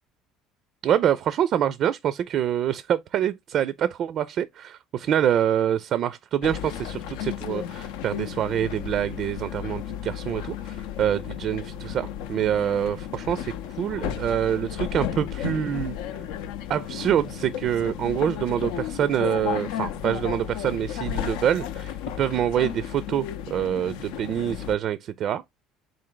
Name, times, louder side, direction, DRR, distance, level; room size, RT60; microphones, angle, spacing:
voice 1, 0.8-16.0 16.7-25.4, right 10 dB, 55° right, 0.4 m, -26 dB
sound 1, 6.4-24.8, left 10 dB, 85° left, 0.6 m, -33 dB
3.9 x 3.2 x 3.8 m
supercardioid pair, 90°, 0 cm